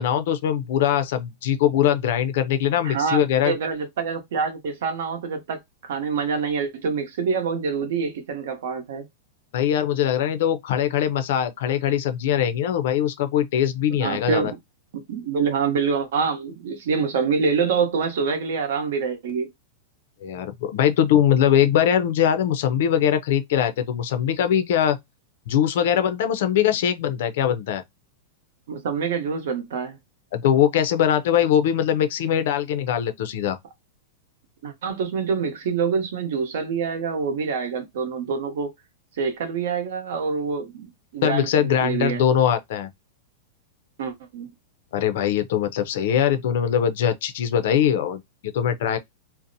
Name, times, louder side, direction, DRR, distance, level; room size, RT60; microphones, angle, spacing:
voice 1, 0.0-3.5 9.5-14.5 20.2-25.0 25.5-27.8 30.3-33.6 41.2-42.9 44.9-49.0, left 9 dB, 55° left, 0.4 m, -22 dB
voice 2, 2.8-9.1 14.0-14.6 14.9-19.5 28.7-30.0 34.6-38.7 39.2-42.4 44.0-44.5, right 5 dB, 60° right, 0.8 m, -26 dB
2.6 x 2.0 x 2.6 m
supercardioid pair, 165°, 0 cm